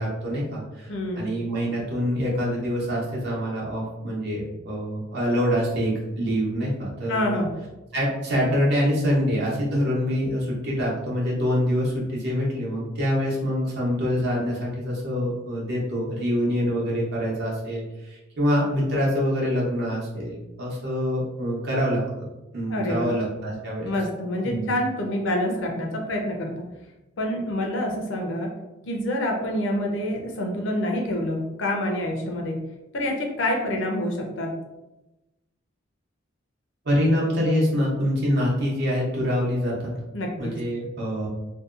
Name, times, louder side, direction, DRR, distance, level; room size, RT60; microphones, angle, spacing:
voice 1, 0.0-7.4 7.9-22.0 22.5-23.9 24.4-24.7 36.8-39.9 40.4-41.3, equal, 55° right, -4 dB, 0.8 m, -25 dB
voice 2, 0.9-1.3 7.1-7.5 22.7-23.1 23.8-26.6 27.2-28.5 28.8-32.6 32.9-34.5 40.1-40.5, left 1 dB, 65° left, 1 dB, 0.5 m, -27 dB
2.7 x 2.2 x 2.4 m, 1.0 s
head